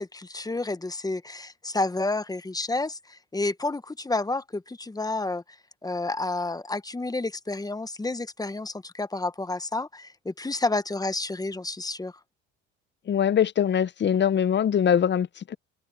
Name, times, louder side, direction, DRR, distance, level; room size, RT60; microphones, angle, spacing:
voice 1, 0.0-5.4 5.8-12.1, left 2 dB, 10° left, 1.1 m, -30 dB
voice 2, 13.1-15.5, left 8 dB, 35° left, 0.8 m, -22 dB
open air
supercardioid pair, 80°, 31 cm